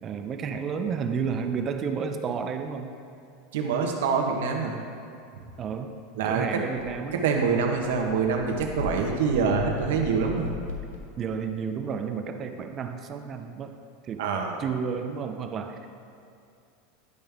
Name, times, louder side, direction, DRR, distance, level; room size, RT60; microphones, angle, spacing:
voice 1, 0.0-2.9 5.6-5.9 6.2-7.1 11.2-13.8 14.0-14.2 14.6-15.9, right 6 dB, 25° right, 7 dB, 0.4 m, -31 dB
voice 2, 3.5-4.8 6.2-6.6 7.1-10.5 14.2-14.6, right 5 dB, 75° right, 2 dB, 1.1 m, -25 dB
sound 1, 6.8-6.9 7.2-11.3, left 3 dB, 80° left, 0.9 m, -38 dB
11.0 x 5.3 x 3.4 m, 2.5 s
supercardioid pair, 160°, 0 cm